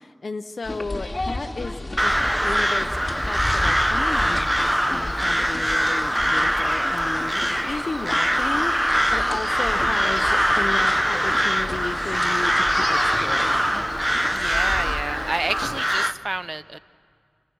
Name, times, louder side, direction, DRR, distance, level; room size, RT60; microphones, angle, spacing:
voice 1, 0.0-2.2 2.4-3.0 3.3-13.9, left 3 dB, 85° left, 6 dB, 0.7 m, -33 dB
sound 1, 0.6-15.8, left 1 dB, 30° left, 2.8 m, -33 dB
Crow, 2.0-16.1, equal, 5° right, 0.8 m, -23 dB
voice 2, 14.3-16.8, right 2 dB, 45° right, 16 dB, 0.6 m, -29 dB
28.5 x 25.5 x 6.2 m, 2.3 s
wide cardioid pair, 50°, 0 cm